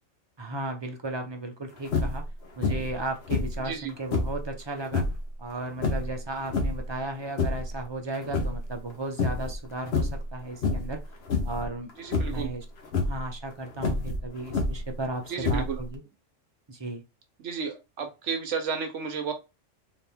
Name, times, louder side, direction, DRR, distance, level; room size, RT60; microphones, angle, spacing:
voice 1, 0.4-2.2 2.6-5.1 5.4-11.0 11.4-11.9 12.2-12.6 13.0-16.0 16.7-17.0, right 2 dB, 30° right, 4 dB, 0.6 m, -35 dB
sound 1, 1.8-2.3 2.6-3.0 3.3-4.4 4.9-5.2 5.8-6.9 7.2-7.8 8.1-8.9 9.2-9.6 9.9-10.3 10.6-11.0 11.3-11.7 12.1-12.5 12.8-13.2 13.8-14.9 15.4-15.9, left 3 dB, 60° left, 1.0 m, -28 dB
voice 2, 12.0-12.5 15.3-15.8 17.4-19.3, right 6 dB, 75° right, 6 dB, 1.1 m, -32 dB
4.1 x 2.7 x 3.4 m, 0.26 s
omnidirectional pair, 1.3 m